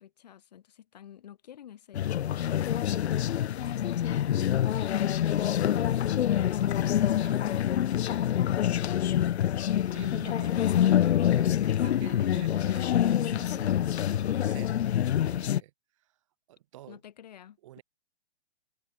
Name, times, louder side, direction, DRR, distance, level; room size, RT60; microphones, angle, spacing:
voice 1, 0.0-7.8 8.1-9.6 10.3-10.8 11.6-12.5 16.9-17.8, left 10 dB, 40° left, 3.2 m, -50 dB
sound 1, 1.9-15.6, left 11 dB, 70° left, 0.6 m, -26 dB
voice 2, 9.9-10.7 11.2-16.1 16.5-17.0 17.6-17.8, right 15 dB, 30° right, 6.5 m, -48 dB
hypercardioid pair, 180°, 34 cm